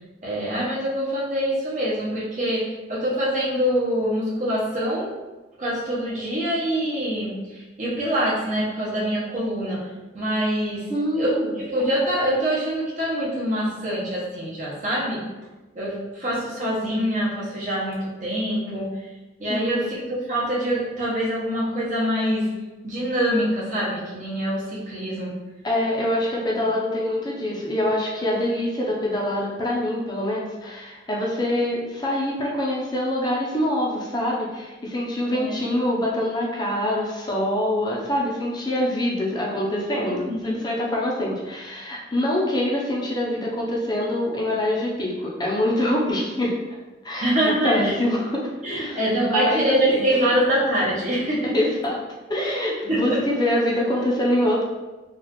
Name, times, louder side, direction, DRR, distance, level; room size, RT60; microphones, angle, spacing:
voice 1, 0.2-5.1 5.6-9.8 10.1-10.9 11.2-15.2 15.7-18.9 19.4-22.5 22.8-25.3 35.3-35.6 40.0-40.6 47.2-48.0 48.6-51.5 52.9-53.2, equal, 45° right, -6 dB, 0.9 m, -25 dB
voice 2, 10.9-11.6 19.5-19.9 25.6-46.5 47.0-49.0 49.2-50.1 51.5-52.0 52.3-54.6, left 1 dB, 25° left, -3 dB, 0.6 m, -25 dB
4.0 x 2.4 x 3.0 m, 1.2 s
head